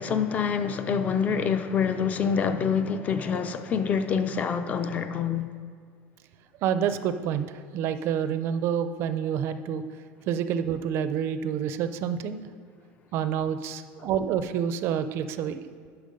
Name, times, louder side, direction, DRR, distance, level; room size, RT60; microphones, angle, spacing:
voice 1, 0.0-5.5, left 6 dB, 25° left, 0.4 m, -26 dB
voice 2, 6.6-7.5 7.7-9.8 10.3-12.4 13.1-15.6, right 8 dB, 40° right, 0.4 m, -28 dB
10.5 x 5.8 x 5.2 m
cardioid pair, 170°, 6 cm